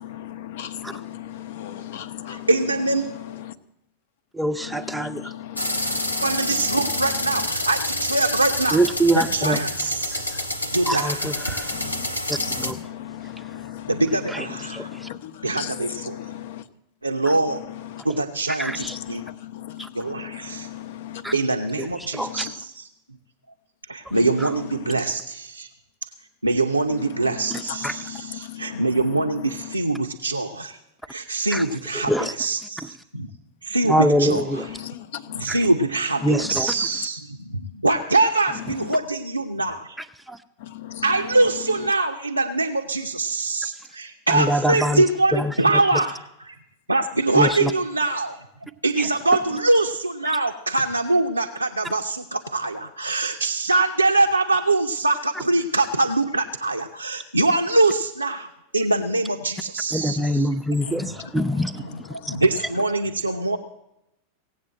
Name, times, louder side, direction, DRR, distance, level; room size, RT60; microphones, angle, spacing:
voice 1, 0.0-2.5 3.0-3.6 4.6-7.5 11.7-16.6 17.5-18.0 18.7-21.4 22.2-22.5 24.1-25.0 26.9-29.8 32.2-32.3 34.5-35.5 36.2-36.6 38.6-38.9 40.6-41.4 60.8-62.4, left 12 dB, 55° left, 0.8 m, -37 dB
voice 2, 2.5-3.0 6.2-8.8 9.1-10.3 10.7-11.3 13.9-14.9 15.4-16.3 17.0-17.6 18.0-19.2 19.9-20.7 21.3-22.9 23.9-25.7 26.4-30.8 31.1-33.3 33.6-34.7 35.3-40.0 41.0-46.5 46.9-48.4 48.8-60.6 60.8-61.2 61.8-63.6, right 2 dB, 85° right, 0.6 m, -23 dB
voice 3, 4.3-5.3 8.7-9.6 10.1-10.4 10.9-11.7 12.3-12.8 14.3-14.5 14.7-15.1 18.6-19.0 19.8-19.9 21.2-21.3 21.8-21.9 22.1-22.3 24.4-24.5 27.8-27.9 31.5-31.6 32.1-32.3 33.9-34.6 35.5-35.6 36.2-36.7 40.3-40.4 44.3-45.0 45.3-45.5 47.3-47.7 49.0-49.1 59.9-61.8 62.3-62.4, equal, ahead, 0.6 m, -24 dB
sound 1, 5.6-12.7, left 1 dB, 85° left, 1.1 m, -28 dB
17.0 x 8.1 x 7.6 m
figure-of-eight pair, 90°, 0 cm